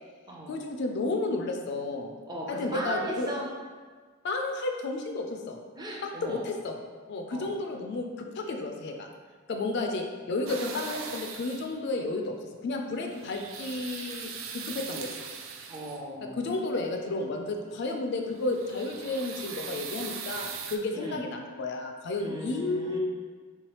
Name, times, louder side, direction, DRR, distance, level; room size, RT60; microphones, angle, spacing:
voice 1, 0.5-2.1 2.5-3.3 4.2-5.6 6.0-6.7 7.1-9.1 9.5-12.3 12.6-15.1 16.4-23.0, left 2 dB, 55° left, 3 dB, 0.3 m, -32 dB
voice 2, 2.3-3.4 5.8-6.5 7.3-7.5 15.7-16.4 20.9-21.2 22.2-23.0, right 1 dB, 20° right, -3 dB, 0.6 m, -37 dB
sound 1, 10.5-11.8 12.9-16.2 18.2-20.8, right 6 dB, 75° right, 0.4 m, -40 dB
3.4 x 3.1 x 3.0 m, 1.5 s
head